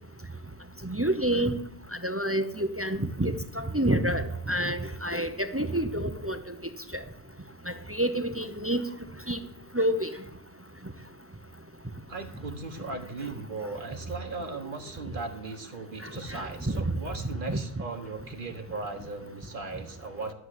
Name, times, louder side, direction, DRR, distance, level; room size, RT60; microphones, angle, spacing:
voice 1, 0.8-1.6 2.0-6.4 6.9-7.0 7.7-8.9 9.3-9.4 9.7-10.1 16.3-16.9 17.5-17.6, right 1 dB, 15° right, 9 dB, 0.7 m, -28 dB
voice 2, 12.1-20.3, right 3 dB, 55° right, 6 dB, 1.5 m, -37 dB
12.5 x 7.2 x 8.2 m, 0.79 s
omnidirectional pair, 1.0 m